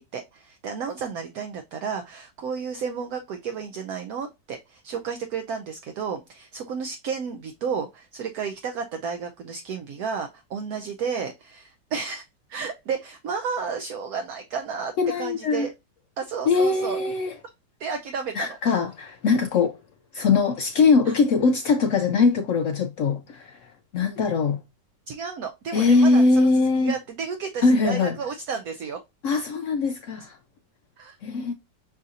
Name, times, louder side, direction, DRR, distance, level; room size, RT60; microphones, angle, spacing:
voice 1, 0.0-12.2 12.5-15.7 16.2-17.0 17.8-18.8 21.1-21.2 25.1-26.5 26.8-29.0 31.0-31.2, right 6 dB, 70° right, 1.0 m, -32 dB
voice 2, 15.0-15.7 16.5-17.3 18.3-19.8 20.1-24.6 25.7-26.9 27.6-28.2 29.2-30.4 31.2-31.5, left 4 dB, 85° left, 0.6 m, -21 dB
6.3 x 2.7 x 2.5 m
omnidirectional pair, 1.9 m